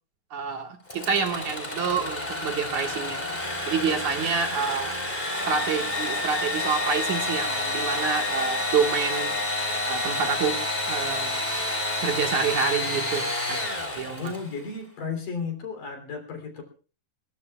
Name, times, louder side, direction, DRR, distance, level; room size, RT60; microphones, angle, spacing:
voice 1, 0.3-3.2 3.7-4.9 5.4-9.3 9.9-10.6 10.9-11.5 12.0-13.6 14.0-14.3, right 6 dB, 60° right, 3 dB, 2.9 m, -28 dB
Engine / Sawing, 0.9-14.6, left 2 dB, 10° left, 3.3 m, -29 dB
voice 2, 14.2-16.6, left 5 dB, 65° left, 5 dB, 4.8 m, -34 dB
23.5 x 21.5 x 2.4 m, 0.39 s
omnidirectional pair, 4.1 m